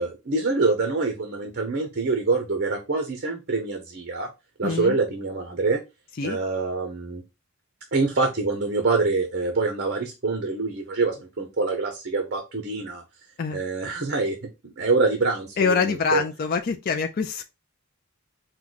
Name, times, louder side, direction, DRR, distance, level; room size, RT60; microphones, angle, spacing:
voice 1, 0.0-4.3 4.6-5.8 6.2-7.2 7.9-13.0 13.5-14.4 14.6-16.2, right 3 dB, 45° right, 0.6 m, -25 dB
voice 2, 4.6-5.0 6.2-6.4 13.4-13.6 15.6-17.4, left 5 dB, 40° left, 0.4 m, -25 dB
4.6 x 2.2 x 3.9 m
head